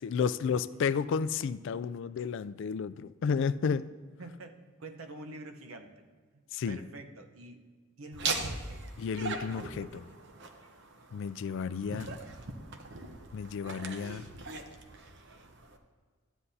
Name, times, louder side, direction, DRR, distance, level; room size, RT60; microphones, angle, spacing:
voice 1, 0.0-3.8 6.5-6.8 9.0-10.0 11.1-12.2 13.3-14.3, left 6 dB, 60° left, 14 dB, 0.3 m, -32 dB
voice 2, 4.2-5.9 6.3-7.7 8.0-9.0, right 2 dB, 85° right, 6 dB, 0.9 m, -47 dB
Laughter, 8.1-15.8, right 3 dB, 60° right, 0.8 m, -40 dB
13.5 x 9.8 x 2.7 m, 1.5 s
head